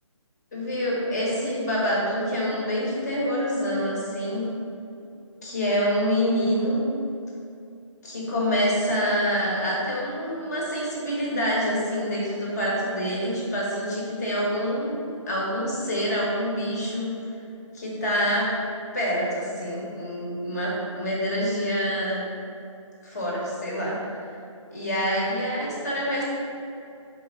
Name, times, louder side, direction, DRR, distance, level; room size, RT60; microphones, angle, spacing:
voice 1, 0.5-4.5 5.4-6.9 8.0-17.2 17.7-18.5 18.9-22.3 23.0-24.2 24.7-26.2, equal, 30° left, -4 dB, 1.4 m, -26 dB
5.0 x 3.6 x 5.7 m, 2.6 s
figure-of-eight pair, 150°, 17 cm